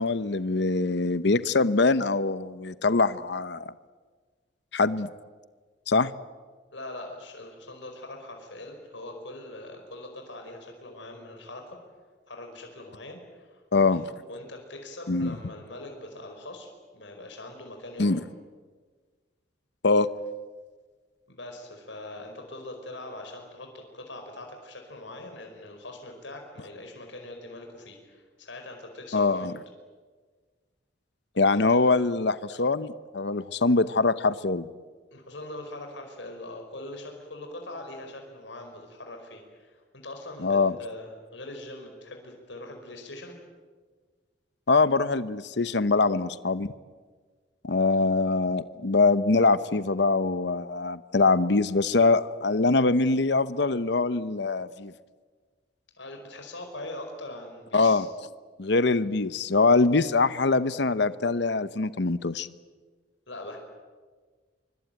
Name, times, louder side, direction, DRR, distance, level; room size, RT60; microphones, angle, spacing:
voice 1, 0.0-3.7 4.7-5.1 5.9-6.1 13.7-14.0 15.1-15.4 18.0-18.2 19.8-20.1 29.1-29.5 31.4-34.7 40.4-40.7 44.7-46.7 47.6-54.9 57.7-58.1 58.6-62.5, left 3 dB, 65° left, 14 dB, 0.8 m, -23 dB
voice 2, 6.7-11.8 12.3-14.0 14.3-16.7 16.9-18.2 21.3-29.5 31.5-31.6 35.1-43.3 56.0-58.1 63.3-63.6, left 2 dB, 85° left, 3 dB, 5.0 m, -42 dB
25.0 x 24.5 x 9.1 m, 1.5 s
head